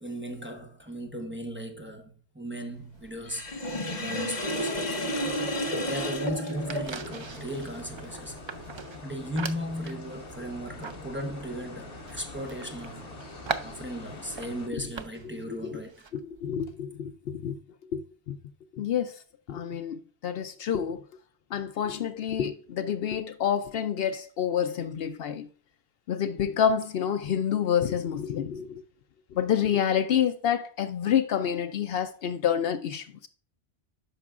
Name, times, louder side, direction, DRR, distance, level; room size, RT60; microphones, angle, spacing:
voice 1, 0.0-3.6 3.9-4.8 5.8-8.4 9.0-13.2 13.6-16.0, equal, 10° right, 0.9 m, -36 dB
sound 1, 2.9-16.7, right 5 dB, 45° right, 0.3 m, -43 dB
Sink (filling or washing), 3.3-7.2, left 1 dB, 40° left, 1.4 m, -31 dB
sound 2, 6.5-14.7, left 2 dB, 90° left, 1.6 m, -44 dB
voice 2, 15.2-15.8 16.1-17.6 17.9-18.4 18.7-19.2 19.5-21.0 21.5-25.5 26.1-28.8 29.3-33.3, left 8 dB, 70° left, 0.7 m, -28 dB
10.0 x 6.0 x 2.4 m
omnidirectional pair, 1.1 m